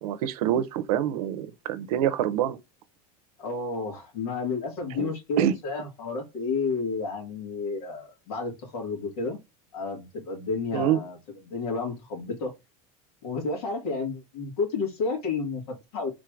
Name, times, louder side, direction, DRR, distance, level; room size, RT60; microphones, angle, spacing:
voice 1, 0.0-2.6 5.0-5.1 5.4-5.5 10.7-11.0, right 11 dB, 80° right, 0.6 m, -26 dB
voice 2, 3.4-9.4 9.7-12.5 13.2-16.1, left 4 dB, 85° left, 2.1 m, -31 dB
3.8 x 2.5 x 4.5 m
supercardioid pair, 130°, 19 cm